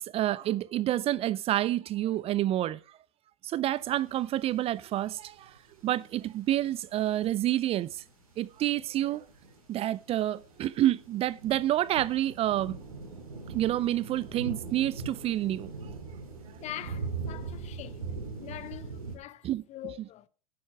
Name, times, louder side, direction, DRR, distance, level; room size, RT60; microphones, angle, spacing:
voice 1, 0.0-2.8 3.4-5.5 5.8-8.0 8.4-9.3 9.7-12.8 13.5-15.7 19.4-19.6, right 13 dB, 35° right, 0.5 m, -28 dB
sound 1, 3.7-6.1 6.4-6.6 6.9-7.3 7.6-19.2, right 4 dB, 85° right, 3.8 m, -41 dB
voice 2, 16.6-18.1 18.4-20.3, left 13 dB, 40° left, 1.0 m, -43 dB
10.5 x 8.4 x 4.8 m
hypercardioid pair, 95°, 18 cm